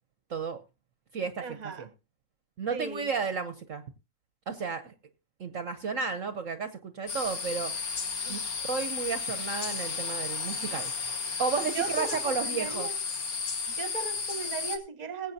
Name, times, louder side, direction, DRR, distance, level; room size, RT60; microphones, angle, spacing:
voice 1, 1.4-1.9 2.7-3.1 8.2-8.4 11.7-12.9 13.7-15.3, right 5 dB, 30° right, 1.0 m, -37 dB
voice 2, 2.6-3.8 4.5-4.9 5.4-7.7 8.3-8.4 8.7-10.9 11.4-12.9, right 5 dB, 55° right, 1.1 m, -32 dB
sound 1, 7.1-14.8, left 5 dB, 60° left, 1.8 m, -33 dB
20.5 x 8.3 x 2.7 m
omnidirectional pair, 1.8 m